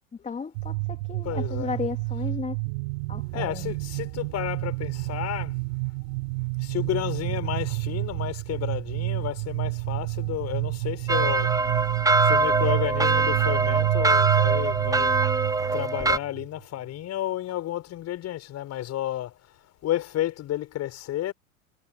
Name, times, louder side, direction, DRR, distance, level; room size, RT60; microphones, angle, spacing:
voice 1, 0.0-2.6 3.1-3.7, left 5 dB, 15° left, 2.7 m, -34 dB
sound 1, 0.5-16.5, right 27 dB, 55° right, 5.0 m, -29 dB
voice 2, 1.2-1.8 3.3-5.6 6.6-15.2 15.7-21.3, left 13 dB, 35° left, 6.8 m, -32 dB
sound 2, 11.1-16.2, right 3 dB, 10° right, 1.3 m, -23 dB
hypercardioid pair, 95°, 44 cm